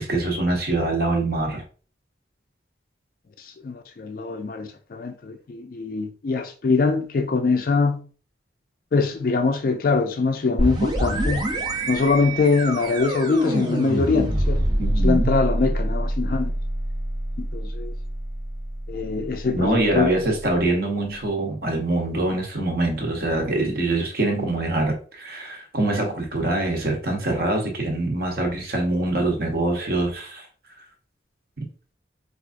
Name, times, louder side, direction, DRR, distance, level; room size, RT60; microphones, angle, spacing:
voice 1, 0.0-1.6 14.8-15.3 19.5-30.5, right 2 dB, 55° right, 0.9 m, -24 dB
voice 2, 3.4-8.0 8.9-11.5 11.9-14.7 15.0-16.5 17.4-17.9 18.9-20.2, left 4 dB, 50° left, 0.4 m, -23 dB
sound 1, 10.6-20.1, right 1 dB, 25° right, 0.5 m, -26 dB
4.6 x 2.5 x 2.5 m
head